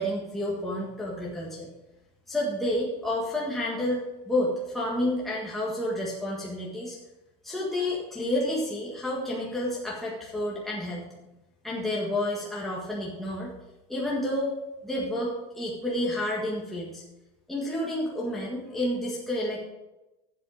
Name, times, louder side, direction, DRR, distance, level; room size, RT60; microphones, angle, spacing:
voice 1, 0.0-1.7 2.3-7.0 7.4-11.1 11.6-13.5 13.9-14.5 14.8-17.0 17.5-19.6, left 1 dB, ahead, -6 dB, 1.7 m, -30 dB
11.5 x 7.7 x 4.9 m, 0.98 s
cardioid pair, 170°, 13 cm